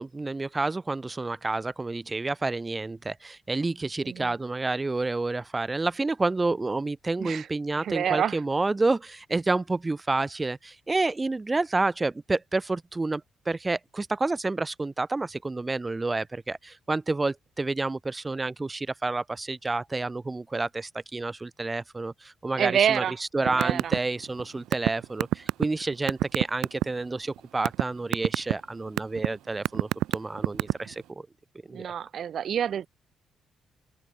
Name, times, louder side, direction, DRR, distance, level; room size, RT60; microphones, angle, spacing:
voice 1, 0.0-31.3 31.7-31.8, right 3 dB, 20° right, 1.0 m, -29 dB
voice 2, 7.8-8.4 22.6-23.2 23.4-23.9 31.7-32.9, right 9 dB, 60° right, 2.3 m, -27 dB
sound 1, 23.5-24.0 24.2-26.8 27.4-27.8 28.1-28.5 29.0-29.3 29.6-30.9, right 14 dB, 85° right, 0.8 m, -23 dB
open air
cardioid pair, 90°, 0 cm